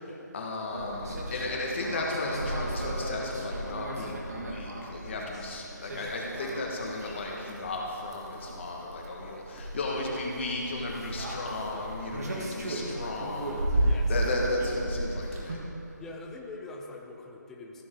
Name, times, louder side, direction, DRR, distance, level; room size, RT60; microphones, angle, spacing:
voice 1, 0.3-15.6, left 2 dB, 40° left, -1 dB, 1.5 m, -34 dB
sound 1, 0.7-15.6, right 1 dB, 55° right, 1.6 m, -34 dB
voice 2, 5.1-5.5 9.2-9.4 11.7-12.6 13.8-14.4 16.0-17.8, left 2 dB, 5° left, 0 dB, 0.3 m, -45 dB
14.5 x 6.2 x 3.7 m, 3.0 s
figure-of-eight pair, 160°, 10 cm